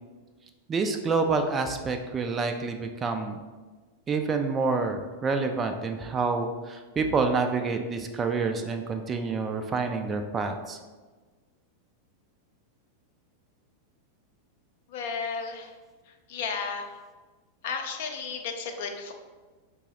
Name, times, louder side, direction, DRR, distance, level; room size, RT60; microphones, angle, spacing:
voice 1, 0.7-3.4 4.1-10.8, right 4 dB, 20° right, 6 dB, 0.3 m, -28 dB
voice 2, 14.9-15.7 16.3-16.9 17.6-19.1, left 5 dB, 55° left, 4 dB, 0.5 m, -33 dB
4.6 x 2.0 x 3.6 m, 1.3 s
figure-of-eight pair, 90°, 0 cm